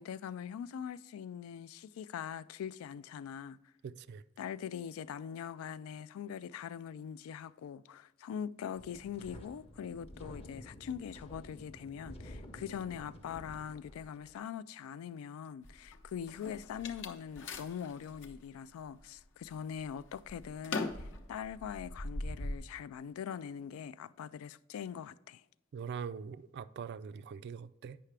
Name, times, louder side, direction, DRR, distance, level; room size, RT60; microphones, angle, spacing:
voice 1, 0.0-3.6 4.4-25.4, left 8 dB, 80° left, 0.3 m, -42 dB
voice 2, 3.8-4.2 25.7-28.0, right 6 dB, 55° right, 0.3 m, -42 dB
Wind, 8.7-14.4, left 1 dB, 30° left, 0.7 m, -51 dB
sound 1, 15.6-18.4 18.9-19.4 19.8-22.6, left 2 dB, 60° left, 0.7 m, -41 dB
8.5 x 5.7 x 3.3 m
head